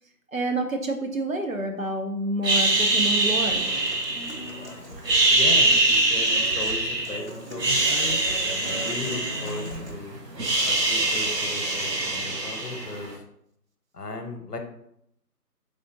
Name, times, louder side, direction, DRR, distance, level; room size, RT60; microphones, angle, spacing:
voice 1, 0.3-3.7, right 2 dB, 60° right, 4 dB, 0.6 m, -28 dB
sound 1, 2.4-4.6 5.0-7.2 7.5-9.9 10.2-13.1, right 2 dB, 85° right, 1.1 m, -23 dB
Human voice / Acoustic guitar, 3.5-9.9, equal, 50° left, 0.5 m, -40 dB
voice 2, 5.3-10.2 10.7-13.1 13.9-14.6, left 3 dB, 75° left, 5 dB, 0.8 m, -36 dB
3.8 x 3.4 x 2.6 m, 0.74 s
figure-of-eight pair, 180°, 48 cm